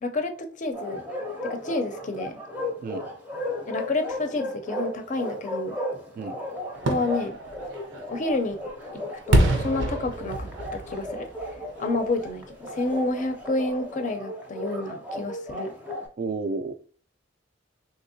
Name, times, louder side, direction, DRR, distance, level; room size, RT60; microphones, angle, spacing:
voice 1, 0.0-1.0 1.4-2.4 3.7-5.8 6.9-7.4 8.1-8.6 9.3-11.3 11.8-15.7, left 2 dB, 40° left, 6 dB, 0.5 m, -29 dB
Bark, 0.7-16.1, left 1 dB, 10° right, 0.6 m, -35 dB
Fireworks, 6.7-12.5 12.9-13.0, right 1 dB, 80° right, 0.7 m, -27 dB
voice 2, 16.2-16.7, right 3 dB, 50° right, 9 dB, 0.3 m, -31 dB
3.5 x 2.8 x 2.7 m, 0.44 s
head